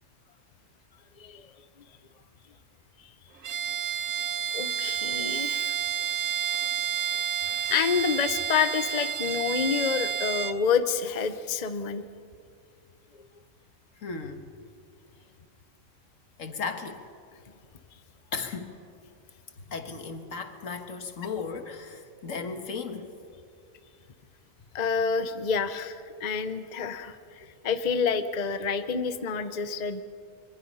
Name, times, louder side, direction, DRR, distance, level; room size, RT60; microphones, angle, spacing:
voice 1, 1.2-1.5 4.5-5.7 7.7-12.0 24.7-30.0, left 6 dB, 40° left, 10 dB, 0.9 m, -28 dB
Bowed string instrument, 3.4-10.6, right 8 dB, 80° right, 1.3 m, -30 dB
voice 2, 14.0-14.5 16.4-17.1 18.3-18.8 19.7-23.1, left 5 dB, 80° left, 7 dB, 1.8 m, -36 dB
25.5 x 23.5 x 5.6 m, 2.3 s
omnidirectional pair, 1.3 m